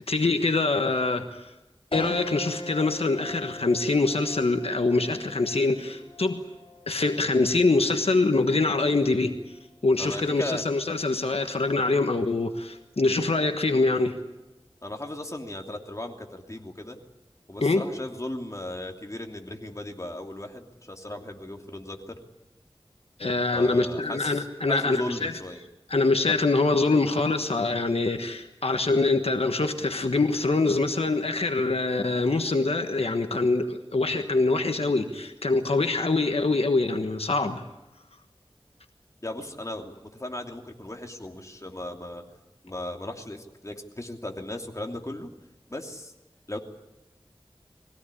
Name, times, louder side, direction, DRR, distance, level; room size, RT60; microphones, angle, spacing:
voice 1, 0.1-1.5 1.9-6.4 6.9-9.3 9.8-14.1 17.6-17.8 23.2-25.3 25.9-37.6, left 3 dB, 90° left, 6 dB, 1.4 m, -24 dB
sound 1, 1.9-11.5 12.0-12.1 13.4-13.9, left 2 dB, 65° left, 5.2 m, -41 dB
voice 2, 10.0-10.6 14.8-17.0 17.5-22.2 23.5-25.6 39.2-39.9 40.2-42.2 42.6-45.3 45.7-46.1 46.5-46.6, left 1 dB, 30° left, 2 dB, 2.9 m, -36 dB
22.0 x 17.0 x 9.9 m, 1.0 s
wide cardioid pair, 45°, 10 cm